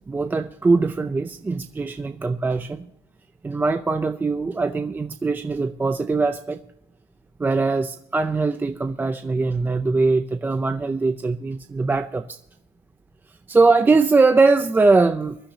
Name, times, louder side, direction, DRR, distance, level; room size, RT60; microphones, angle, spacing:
voice 1, 0.1-2.9 3.4-6.6 7.4-12.4 13.5-15.4, right 3 dB, 15° right, 0.5 m, -21 dB
24.0 x 11.5 x 2.8 m
cardioid pair, 130°, 13 cm